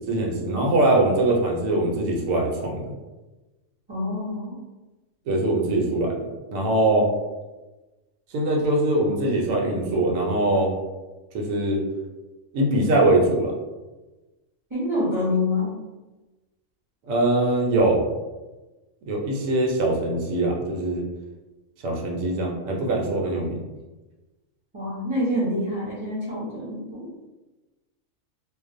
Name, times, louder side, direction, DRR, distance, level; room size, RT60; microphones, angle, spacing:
voice 1, 0.1-2.8 5.3-7.1 8.3-10.7 11.3-11.8 12.5-13.5 17.1-18.0 19.1-21.0 21.8-23.6, right 2 dB, 75° right, -1 dB, 1.0 m, -22 dB
voice 2, 3.9-4.6 14.7-15.7 24.7-26.8, left 1 dB, 30° right, -9 dB, 0.5 m, -26 dB
2.5 x 2.1 x 2.5 m, 1.1 s
omnidirectional pair, 1.4 m